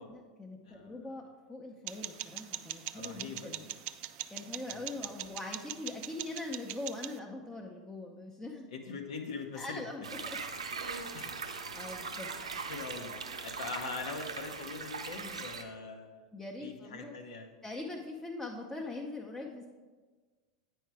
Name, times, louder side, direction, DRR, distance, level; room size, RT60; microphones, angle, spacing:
voice 1, 0.0-3.7 4.3-8.7 9.6-10.4 10.7-10.9 11.7-12.3 16.3-17.1 17.6-19.7, left 2 dB, 10° left, -1 dB, 0.9 m, -42 dB
voice 2, 0.6-1.0 2.9-3.6 4.7-5.1 8.7-9.9 11.1-11.3 12.6-13.1 13.4-16.2 16.6-17.5, left 4 dB, 70° left, 2 dB, 1.0 m, -42 dB
sound 1, 1.9-7.2, right 14 dB, 50° right, 0.4 m, -42 dB
sound 2, 10.0-15.6, right 4 dB, 85° right, 0.7 m, -40 dB
9.0 x 4.8 x 4.7 m, 1.4 s
figure-of-eight pair, 85°, 3 cm